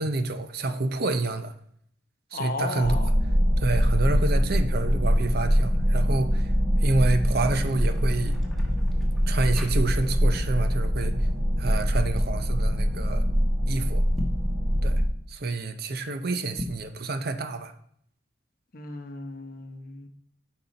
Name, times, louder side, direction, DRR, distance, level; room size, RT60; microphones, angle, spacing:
voice 1, 0.0-1.5 2.3-3.0 3.6-6.5 6.8-8.4 9.3-11.3 11.6-13.2 13.6-14.0 14.8-15.0 15.3-17.7, right 2 dB, 50° right, 9 dB, 0.6 m, -28 dB
voice 2, 2.3-3.1 18.7-20.1, left 3 dB, 45° left, 5 dB, 0.9 m, -35 dB
sound 1, 2.8-15.0, equal, 80° right, 1.7 m, -23 dB
sound 2, 7.4-10.3 10.6-10.9 11.5-12.0 14.0-14.5 16.5-16.9, left 1 dB, ahead, 1.1 m, -40 dB
7.8 x 4.3 x 5.2 m, 0.67 s
head